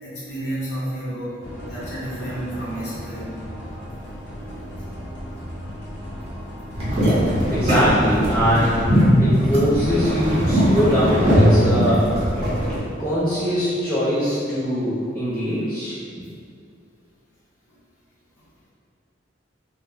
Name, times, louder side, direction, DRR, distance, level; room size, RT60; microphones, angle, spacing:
voice 1, 0.0-3.3, right 1 dB, 65° left, -9 dB, 1.0 m, -31 dB
sound 1, 1.4-10.4, equal, 80° left, 0.6 m, -36 dB
sound 2, 6.7-12.8, equal, 35° right, 0.8 m, -19 dB
voice 2, 7.5-12.0 13.0-15.9, equal, 10° left, -11 dB, 0.4 m, -22 dB
sound 3, 11.1-12.0, right 1 dB, 85° right, 0.6 m, -26 dB
2.6 x 2.1 x 3.5 m, 2.3 s
head